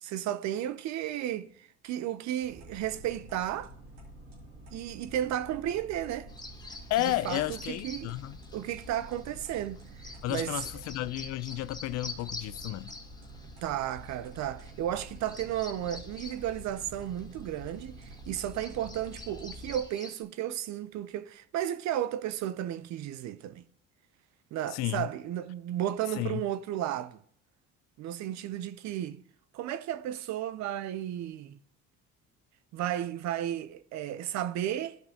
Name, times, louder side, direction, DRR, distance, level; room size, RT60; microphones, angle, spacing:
voice 1, 0.0-3.7 4.7-6.3 7.0-8.1 8.5-10.6 13.6-23.6 24.5-27.2 28.0-29.2 29.5-31.6 32.7-35.0, right 11 dB, 65° right, 0.6 m, -34 dB
sound 1, 2.4-19.8, right 1 dB, 85° right, 2.8 m, -48 dB
Bird vocalization bird call bird song, 6.3-20.2, left 3 dB, 15° left, 1.2 m, -47 dB
voice 2, 6.9-8.4 10.2-12.9 24.7-25.1 26.2-26.4, left 15 dB, 60° left, 0.4 m, -32 dB
14.0 x 5.3 x 2.8 m
supercardioid pair, 80°, 30 cm